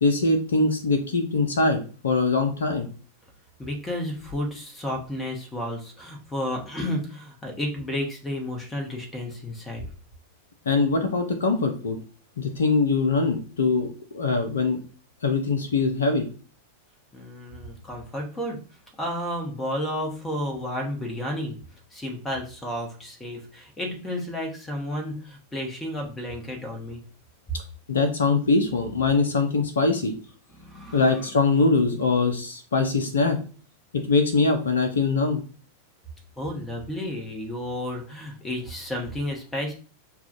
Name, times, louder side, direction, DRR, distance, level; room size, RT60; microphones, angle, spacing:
voice 1, 0.0-2.9 10.7-12.0 12.4-14.8 15.2-16.3 27.9-30.1 30.9-33.4 33.9-35.4, left 3 dB, 65° left, 5 dB, 0.6 m, -22 dB
voice 2, 3.6-9.8 17.1-18.6 19.0-21.6 21.9-27.0 30.5-31.3 36.4-39.7, left 1 dB, 10° left, 1 dB, 1.1 m, -32 dB
6.9 x 2.4 x 2.5 m, 0.38 s
figure-of-eight pair, 90°, 0 cm